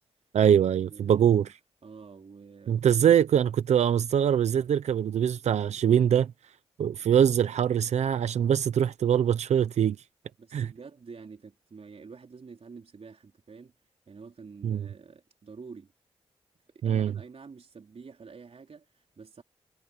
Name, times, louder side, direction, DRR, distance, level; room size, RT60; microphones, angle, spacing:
voice 1, 0.3-1.5 2.7-6.3 6.8-10.0 10.5-10.7 14.6-14.8 16.8-17.1, right 9 dB, 85° right, 0.7 m, -23 dB
voice 2, 0.9-1.5 1.8-3.2 10.4-13.7 14.1-15.9 16.7-19.4, right 5 dB, 60° right, 4.4 m, -48 dB
cardioid pair, 45°, 11 cm